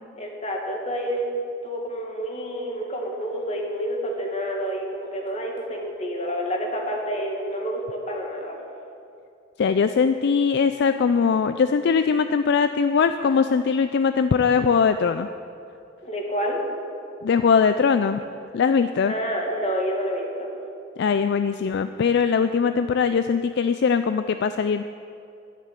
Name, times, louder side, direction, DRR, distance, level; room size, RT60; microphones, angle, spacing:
voice 1, 0.2-1.3 1.6-8.6 16.0-16.6 19.1-20.5, equal, 35° left, 0 dB, 2.0 m, -28 dB
voice 2, 9.6-15.3 17.2-18.2 18.5-19.1 21.0-24.8, left 6 dB, 60° left, 10 dB, 0.4 m, -21 dB
12.0 x 6.7 x 9.1 m, 2.6 s
head